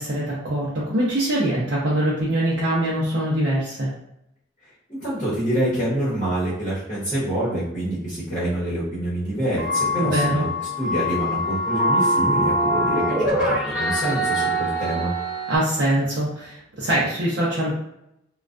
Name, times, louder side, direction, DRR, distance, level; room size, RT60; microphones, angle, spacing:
voice 1, 0.0-3.9 10.0-10.4 15.5-17.7, right 1 dB, 55° right, -7 dB, 0.5 m, -23 dB
voice 2, 4.9-10.4 10.8-15.1, right 1 dB, 30° left, -9 dB, 0.9 m, -26 dB
sound 1, 9.6-15.6, equal, 5° right, 0.6 m, -23 dB
2.3 x 2.2 x 2.4 m, 0.82 s
head